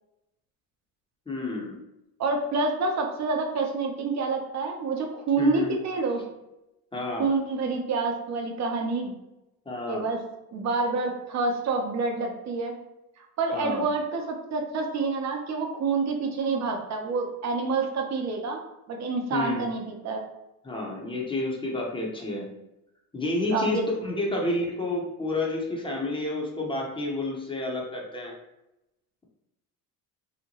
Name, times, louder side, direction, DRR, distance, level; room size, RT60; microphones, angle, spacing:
voice 1, 1.3-1.8 5.4-5.7 6.9-7.3 9.7-10.1 13.5-13.9 19.3-19.7 20.6-22.5 23.1-28.3, left 2 dB, 10° left, -2 dB, 0.8 m, -30 dB
voice 2, 2.2-6.2 7.2-9.1 9.9-10.2 10.5-12.8 13.4-18.6 18.9-20.2 23.5-23.8, right 4 dB, 40° right, 2 dB, 0.7 m, -28 dB
2.8 x 2.1 x 2.9 m, 0.91 s
hypercardioid pair, 70°, 43 cm